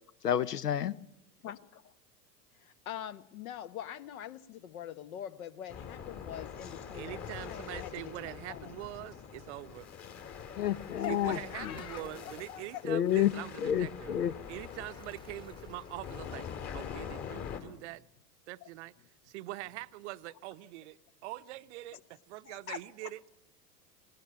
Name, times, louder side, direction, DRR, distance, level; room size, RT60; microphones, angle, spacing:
voice 1, 0.2-1.0 10.5-11.8 12.8-13.3 13.6-14.3, left 10 dB, 75° left, 0.8 m, -29 dB
voice 2, 1.4-1.9 2.5-8.9 11.0-12.8 18.6-18.7 21.9-22.0 22.5-23.1, left 10 dB, 60° left, 1.2 m, -44 dB
sound 1, 5.7-17.6, left 7 dB, 35° left, 2.7 m, -44 dB
voice 3, 6.9-9.9 11.1-14.1 14.5-18.0 18.5-18.9 19.2-23.2, right 17 dB, 45° right, 0.7 m, -43 dB
sound 2, 10.6-16.9, left 2 dB, 10° left, 1.2 m, -57 dB
19.5 x 18.0 x 8.8 m
figure-of-eight pair, 90°, 47 cm